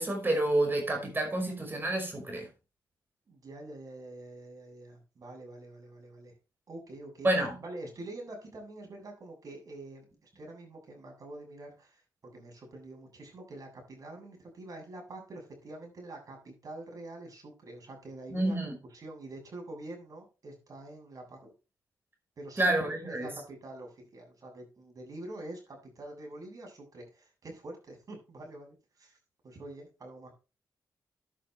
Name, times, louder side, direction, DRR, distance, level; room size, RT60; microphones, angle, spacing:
voice 1, 0.0-2.5 7.2-7.6 18.3-18.7 22.6-23.3, right 1 dB, 30° right, 5.2 m, -29 dB
voice 2, 3.3-6.3 6.7-7.3 7.6-10.1 10.3-12.0 12.3-21.5 22.4-29.2 29.4-30.3, right 2 dB, 55° right, 7.6 m, -46 dB
11.0 x 9.7 x 3.4 m
cardioid pair, 85°, 7 cm